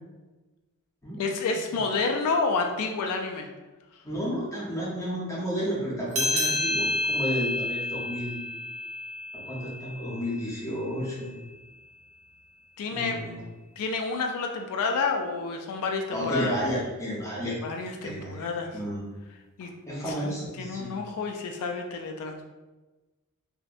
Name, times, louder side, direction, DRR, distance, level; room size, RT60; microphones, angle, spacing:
voice 1, 1.2-3.5 12.8-13.2 13.8-16.5 17.6-18.8 19.6-19.7 20.1-20.3 20.6-22.4, left 4 dB, 80° left, 3 dB, 0.3 m, -29 dB
voice 2, 4.0-8.4 9.3-11.4 12.9-13.4 16.1-17.6 18.0-18.4 18.7-19.0 19.9-20.9, equal, 15° left, -5 dB, 0.6 m, -32 dB
sound 1, 6.1-11.0, left 1 dB, 70° right, 0.6 m, -30 dB
2.6 x 2.1 x 2.3 m, 1.2 s
head